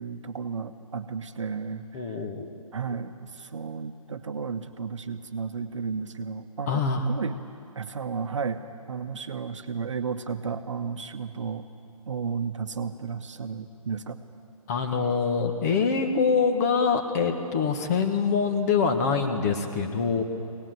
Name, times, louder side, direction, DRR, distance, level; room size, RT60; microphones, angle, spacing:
voice 1, 0.0-2.2 2.7-7.4 7.7-8.6 8.9-11.7 12.1-14.2, right 5 dB, 55° right, 9 dB, 1.1 m, -33 dB
voice 2, 1.9-2.5 2.9-3.0 6.7-7.1 14.7-20.2, left 5 dB, 25° left, 6 dB, 1.5 m, -25 dB
22.5 x 18.5 x 7.8 m, 2.6 s
figure-of-eight pair, 145°, 19 cm